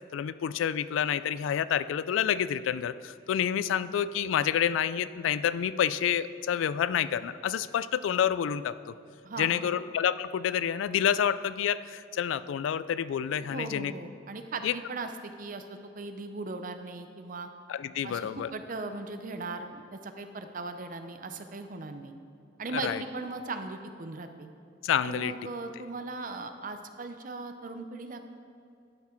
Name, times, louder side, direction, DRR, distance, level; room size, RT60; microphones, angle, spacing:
voice 1, 0.1-8.9 9.4-13.9 14.6-14.7 17.7-18.5 22.7-23.0 24.8-25.3, left 9 dB, 90° left, 16 dB, 0.3 m, -28 dB
voice 2, 9.2-9.8 13.5-17.5 18.0-22.1 22.6-24.5 25.0-28.2, right 3 dB, 45° right, 7 dB, 0.6 m, -38 dB
11.5 x 6.0 x 4.4 m, 2.5 s
head